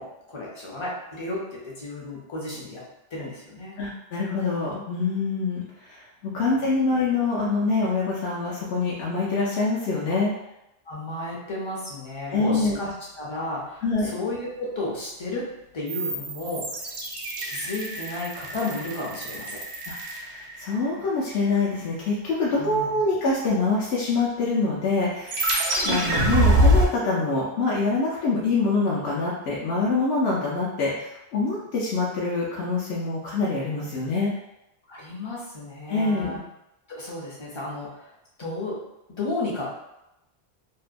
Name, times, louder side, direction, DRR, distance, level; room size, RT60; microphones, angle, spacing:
voice 1, 0.0-2.8 3.1-3.7 6.2-6.7 10.9-16.9 17.4-19.6 22.6-23.0 25.8-25.9 34.9-36.4 36.9-38.1 38.4-39.7, left 2 dB, 35° left, -4 dB, 0.5 m, -33 dB
voice 2, 3.8-10.3 12.3-12.8 13.8-14.1 19.9-34.3 35.9-36.4, left 3 dB, 75° left, -7 dB, 0.8 m, -25 dB
sound 1, 15.9-20.9 25.3-26.9, right 1 dB, 80° right, 0.9 m, -25 dB
2.7 x 2.2 x 2.4 m, 0.89 s
omnidirectional pair, 1.1 m